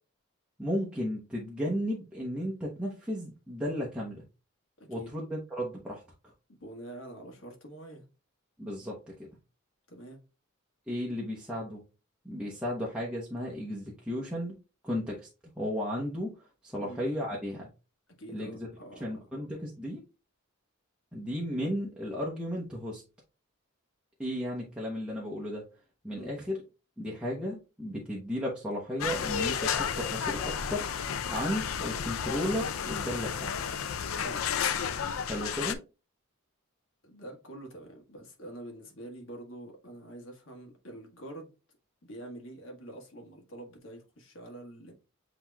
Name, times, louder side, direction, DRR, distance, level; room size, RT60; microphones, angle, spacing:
voice 1, 0.6-4.2 4.9-6.0 8.6-9.1 10.9-11.8 12.2-14.6 14.8-15.3 15.6-16.4 16.6-17.7 18.3-18.7 19.0-20.0 21.1-23.0 24.2-25.6 26.0-26.6 27.0-30.9 31.3-33.5 35.3-35.8, equal, 5° right, 0.8 m, -34 dB
voice 2, 4.8-5.1 6.6-8.0 9.9-10.2 16.8-17.0 18.2-19.0 26.1-26.4 34.1-34.4 37.0-41.5 42.0-44.9, right 1 dB, 65° left, 1.4 m, -46 dB
sound 1, 29.0-35.7, left 7 dB, 80° left, 0.5 m, -32 dB
7.6 x 2.9 x 2.3 m
head